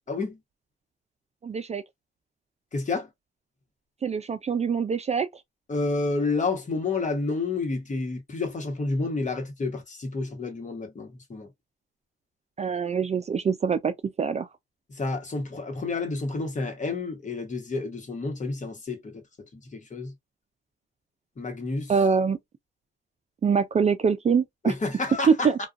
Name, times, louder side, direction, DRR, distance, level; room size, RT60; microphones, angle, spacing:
voice 1, 0.1-0.4 2.7-3.1 5.7-11.5 14.9-19.1 19.5-20.1 21.4-21.9 24.6-25.7, left 3 dB, 40° left, 1.1 m, -30 dB
voice 2, 1.4-1.8 4.0-5.3 12.6-13.9 14.2-14.5 21.9-22.4 23.4-24.7 25.3-25.6, right 6 dB, 35° right, 0.4 m, -24 dB
2.4 x 2.3 x 2.4 m
cardioid pair, 65°, 20 cm